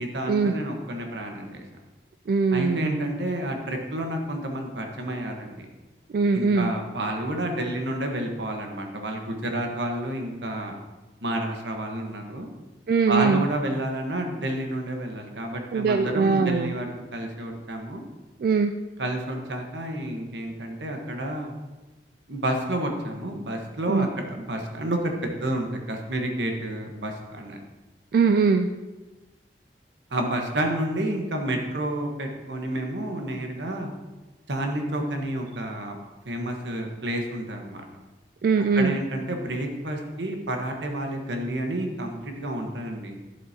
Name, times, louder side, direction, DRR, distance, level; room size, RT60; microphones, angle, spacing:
voice 1, 0.0-1.6 2.5-5.6 6.3-10.8 11.2-12.5 13.1-18.0 19.0-21.5 22.3-27.6 30.1-33.9 34.5-36.0 36.2-37.9 38.7-43.2, right 1 dB, 85° right, 3 dB, 1.3 m, -30 dB
voice 2, 2.3-3.1 6.1-6.7 12.9-13.4 15.7-16.7 18.4-18.7 23.9-24.1 28.1-28.7 38.4-39.0, right 4 dB, 55° right, 7 dB, 0.3 m, -21 dB
11.0 x 7.7 x 2.9 m, 1.2 s
head